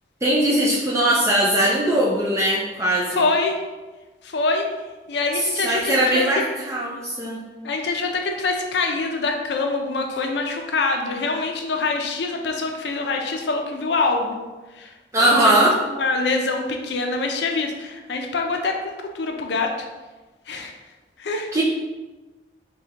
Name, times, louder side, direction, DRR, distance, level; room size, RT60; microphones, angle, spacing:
voice 1, 0.2-3.3 5.3-7.4 15.1-15.8 21.5-21.6, right 1 dB, 15° right, -4 dB, 0.3 m, -20 dB
voice 2, 3.1-3.6 4.2-4.6 5.1-6.2 7.6-14.4 14.7-14.9 15.2-15.7 16.0-19.7 20.5-20.7 21.2-21.5, left 3 dB, 75° left, 3 dB, 0.5 m, -25 dB
4.9 x 2.3 x 2.8 m, 1.2 s
head